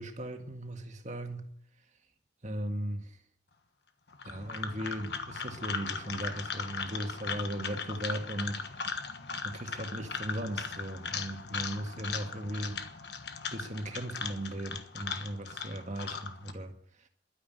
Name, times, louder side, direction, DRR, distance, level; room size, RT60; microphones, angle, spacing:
voice 1, 0.0-1.5 2.4-3.2 4.2-9.0 9.4-12.8 13.5-17.1, right 1 dB, 45° right, 1.8 m, -37 dB
sound 1, 4.1-16.5, left 5 dB, 70° left, 1.4 m, -38 dB
12.0 x 9.8 x 9.3 m
head